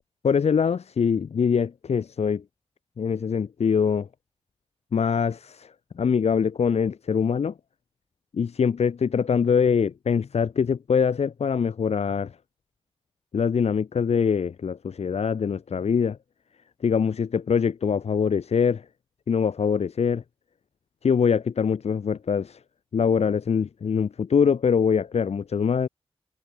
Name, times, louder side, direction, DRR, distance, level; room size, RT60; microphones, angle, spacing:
voice 1, 0.2-2.4 3.0-4.1 4.9-5.7 6.0-7.5 8.3-12.3 13.3-16.2 16.8-18.8 19.3-20.2 21.0-22.6 22.9-25.9, left 6 dB, 85° left, 3.8 m, -23 dB
wide cardioid pair, 115°, 11 cm